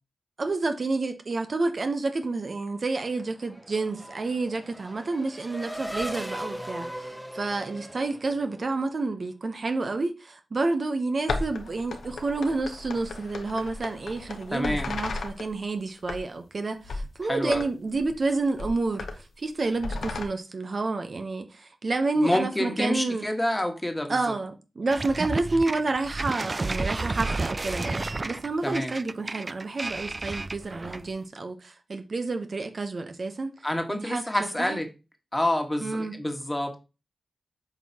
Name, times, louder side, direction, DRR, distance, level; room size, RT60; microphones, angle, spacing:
voice 1, 0.4-23.2 24.1-33.6 33.9-34.2 34.6-34.8 35.8-36.2, right 3 dB, 55° right, 0.8 m, -29 dB
Race car auto racing / Accelerating revving vroom, 2.9-9.0, equal, 5° right, 1.0 m, -39 dB
sound 1, 11.3-15.5 16.0-16.5 16.8-17.1 17.5-17.7 17.9-18.2 18.6-19.2 19.7-20.2, left 3 dB, 85° left, 0.9 m, -34 dB
voice 2, 14.5-14.9 17.2-17.6 22.1-24.2 28.6-28.9 33.6-34.9 35.3-36.8, left 1 dB, 15° left, 1.4 m, -27 dB
sound 2, 24.9-31.2, right 3 dB, 40° right, 0.3 m, -31 dB
7.8 x 4.7 x 2.9 m
cardioid pair, 55°, 0 cm